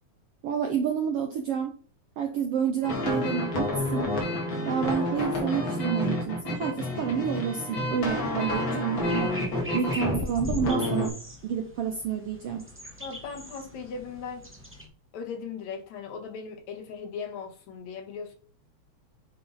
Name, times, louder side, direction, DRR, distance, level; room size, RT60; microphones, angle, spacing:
voice 1, 0.4-1.7 2.2-4.1 4.6-9.3 9.7-11.1 11.4-12.7, right 7 dB, 65° right, 4 dB, 1.6 m, -29 dB
sound 1, 2.8-11.1, left 1 dB, 45° left, 2.3 m, -29 dB
sound 2, 8.9-14.9, equal, 10° right, 0.9 m, -43 dB
voice 2, 13.0-14.4 15.1-18.3, left 5 dB, 70° left, 3 dB, 2.6 m, -38 dB
9.6 x 3.8 x 4.0 m, 0.43 s
omnidirectional pair, 3.4 m